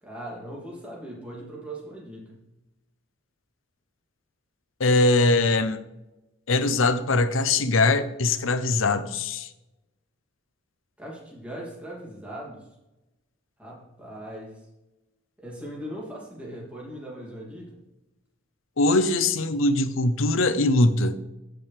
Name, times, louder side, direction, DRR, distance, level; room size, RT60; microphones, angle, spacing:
voice 1, 0.0-2.4 11.0-12.7 13.6-14.5 15.4-17.8, right 1 dB, 5° right, -5 dB, 2.9 m, -39 dB
voice 2, 4.8-5.9 6.5-9.5 18.8-21.2, left 2 dB, 85° left, 12 dB, 0.7 m, -22 dB
14.5 x 6.0 x 3.5 m, 0.95 s
head